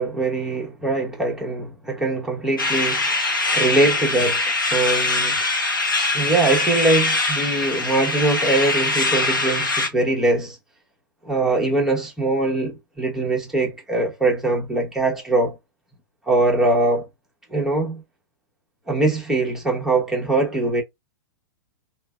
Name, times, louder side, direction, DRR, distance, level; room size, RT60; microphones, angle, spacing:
voice 1, 0.0-3.1 3.5-4.4 4.7-5.4 6.1-10.6 11.2-15.6 16.3-17.1 17.5-18.0 18.9-20.8, right 2 dB, 5° right, 1.1 m, -22 dB
sound 1, 2.6-9.9, left 3 dB, 75° left, 1.2 m, -22 dB
3.3 x 2.9 x 2.3 m
figure-of-eight pair, 100°, 11 cm